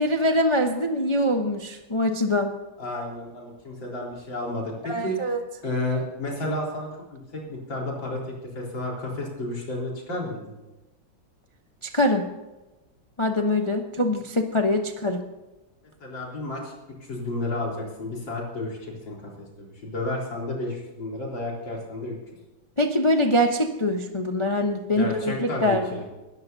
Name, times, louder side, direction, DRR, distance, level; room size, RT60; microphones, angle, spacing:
voice 1, 0.0-2.5 4.8-5.4 11.8-12.3 13.2-15.2 22.8-25.9, left 1 dB, 25° left, 4 dB, 0.7 m, -23 dB
voice 2, 2.8-5.2 5.6-10.6 16.0-16.7 17.0-22.2 24.9-26.1, left 1 dB, 70° left, -2 dB, 4.8 m, -32 dB
20.0 x 14.5 x 2.8 m, 1.1 s
omnidirectional pair, 2.2 m